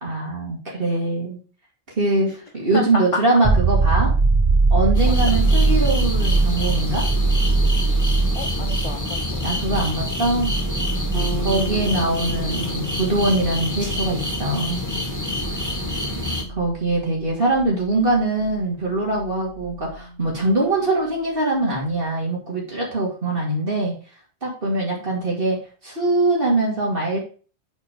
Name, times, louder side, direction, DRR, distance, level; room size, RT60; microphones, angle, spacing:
voice 1, 0.0-1.4 2.0-4.1 4.7-7.0 9.4-10.5 11.4-14.9 16.6-23.9 24.4-27.2, right 2 dB, 55° right, -3 dB, 2.6 m, -22 dB
voice 2, 2.7-3.2 5.1-5.2 8.4-9.5 10.9-11.3 16.1-16.3 25.0-25.1, left 3 dB, 30° left, 4 dB, 0.9 m, -31 dB
sound 1, 3.4-16.9 19.7-19.8, right 3 dB, 35° right, 0.4 m, -22 dB
sound 2, 4.9-16.4, left 1 dB, 15° left, 1.6 m, -28 dB
sound 3, 11.1-20.9, right 2 dB, 70° right, 2.4 m, -36 dB
8.4 x 4.5 x 5.0 m, 0.37 s
omnidirectional pair, 1.2 m